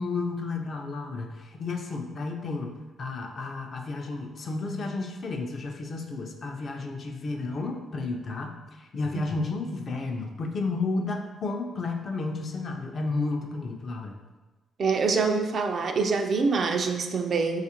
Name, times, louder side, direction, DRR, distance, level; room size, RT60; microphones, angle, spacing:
voice 1, 0.0-2.7 3.0-14.1, left 3 dB, 50° left, 3 dB, 0.4 m, -32 dB
voice 2, 14.8-17.6, right 4 dB, 50° right, 5 dB, 0.3 m, -25 dB
4.2 x 2.4 x 2.8 m, 1.2 s
cardioid pair, 90°, 0 cm